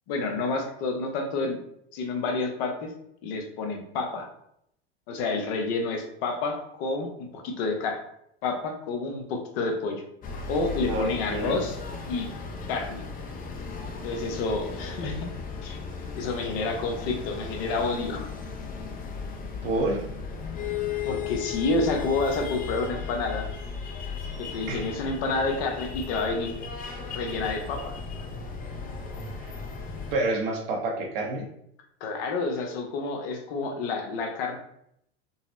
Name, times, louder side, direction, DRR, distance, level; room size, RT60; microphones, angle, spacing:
voice 1, 0.1-1.6 1.9-2.9 3.2-4.3 5.1-8.0 8.4-10.0 10.5-11.8 12.1-12.3 12.7-13.0 14.0-15.3 15.6-15.8 16.1-18.3 21.0-23.5 24.4-26.5 27.1-27.9 32.0-34.6, left 3 dB, 65° left, 3 dB, 0.8 m, -29 dB
sound 1, 10.2-30.2, left 5 dB, 30° left, 0.5 m, -36 dB
voice 2, 10.8-11.6 19.6-20.0 24.7-24.8 29.4-29.6 30.1-31.5, right 2 dB, 65° right, 0 dB, 0.9 m, -28 dB
3.9 x 2.0 x 2.5 m, 0.74 s
hypercardioid pair, 100°, 31 cm